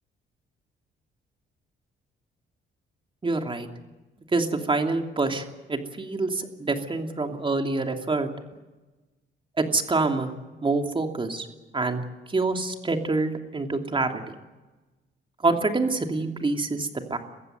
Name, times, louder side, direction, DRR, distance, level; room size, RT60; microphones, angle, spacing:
voice 1, 3.2-3.7 4.3-8.3 9.6-10.3 10.6-11.5 11.7-12.0 12.3-14.2 15.4-17.2, right 3 dB, 25° right, 5 dB, 2.8 m, -26 dB
23.5 x 15.0 x 9.4 m, 1.1 s
cardioid pair, 90°, 20 cm